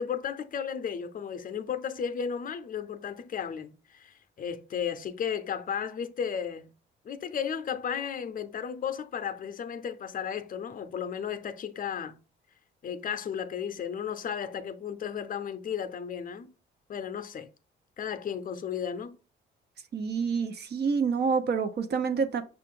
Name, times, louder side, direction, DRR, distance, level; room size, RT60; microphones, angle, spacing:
voice 1, 0.0-6.7 7.0-12.2 12.8-16.5 16.9-17.5 18.0-19.2, left 7 dB, 45° left, 0.6 m, -34 dB
voice 2, 19.9-22.4, right 5 dB, 55° right, 0.8 m, -27 dB
5.7 x 2.5 x 3.8 m
cardioid pair, 90°, 20 cm